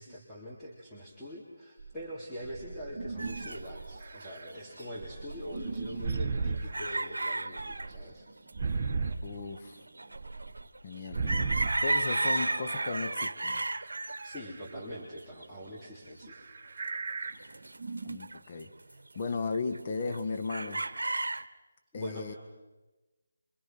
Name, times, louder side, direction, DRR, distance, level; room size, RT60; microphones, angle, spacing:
voice 1, 0.0-8.3 14.2-16.4 21.9-22.4, equal, ahead, -11 dB, 3.6 m, -43 dB
sound 1, 1.8-1.9 2.4-4.5 5.0-7.0 7.6-9.2 10.1-10.6 11.1-11.7 12.5-12.6 13.7-14.7 16.2-17.3 17.6-18.2, right 4 dB, 35° right, 1.7 m, -36 dB
sound 2, 3.2-5.0 5.3-7.9 8.5-8.6 9.1-16.1 16.7-17.0 17.2-18.6 18.9-19.8 20.1-21.5, right 2 dB, 80° right, 1.1 m, -34 dB
voice 2, 9.2-9.7 10.8-11.5 11.8-13.6 18.0-18.7 19.2-20.8 21.9-22.3, left 4 dB, 35° left, 6 dB, 1.7 m, -35 dB
27.0 x 25.0 x 6.2 m, 1.2 s
figure-of-eight pair, 160°, 0 cm